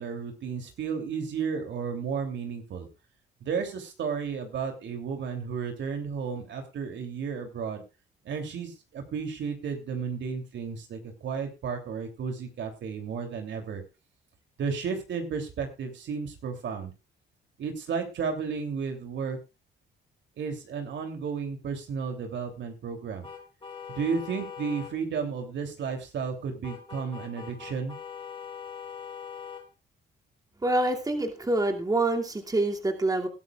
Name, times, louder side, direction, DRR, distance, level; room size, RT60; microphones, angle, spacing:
voice 1, 0.0-2.9 3.4-7.8 8.2-13.8 14.6-16.9 17.6-19.4 20.4-23.3 23.9-27.9, right 6 dB, 65° right, 5 dB, 3.0 m, -33 dB
sound 1, 23.2-24.9 26.6-29.6, left 7 dB, 25° left, 4.2 m, -41 dB
voice 2, 30.6-33.3, right 2 dB, 20° right, 2 dB, 2.5 m, -26 dB
20.5 x 12.0 x 2.4 m, 0.28 s
cardioid pair, 90°, 20 cm